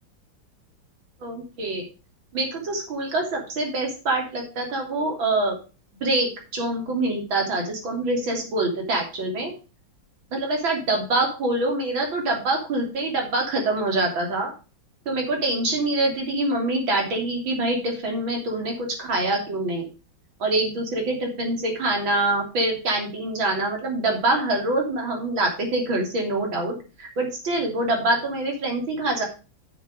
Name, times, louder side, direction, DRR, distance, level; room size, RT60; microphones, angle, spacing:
voice 1, 1.2-1.8 2.3-5.5 6.0-9.5 10.3-14.5 15.1-19.9 20.4-29.2, right 2 dB, 90° right, 1 dB, 3.9 m, -25 dB
8.7 x 7.0 x 4.9 m, 0.33 s
omnidirectional pair, 2.1 m